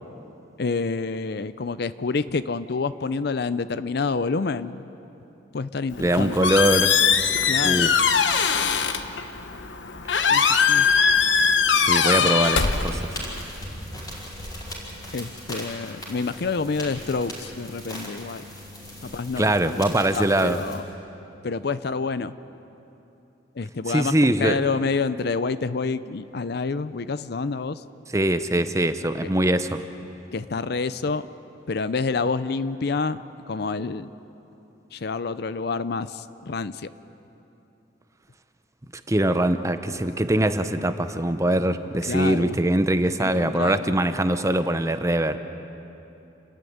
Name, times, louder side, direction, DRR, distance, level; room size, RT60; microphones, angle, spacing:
voice 1, 0.6-4.8 5.5-6.5 7.5-8.0 10.3-10.9 12.2-12.5 15.1-18.4 19.0-20.8 21.4-22.3 23.5-27.8 29.2-29.3 30.3-31.3 31.7-34.1 34.9-36.9 42.1-42.6 43.2-43.9, left 4 dB, 55° left, 14 dB, 0.5 m, -28 dB
Squeak, 5.9-13.4, left 6 dB, 70° left, 1.0 m, -21 dB
voice 2, 6.0-6.9 7.6-7.9 11.9-13.2 19.4-20.6 23.9-24.6 28.1-29.8 39.1-45.4, right 1 dB, 15° right, 9 dB, 0.7 m, -22 dB
sound 1, 12.4-20.8, left 1 dB, 20° left, 5.2 m, -39 dB
28.5 x 13.5 x 9.3 m, 3.0 s
head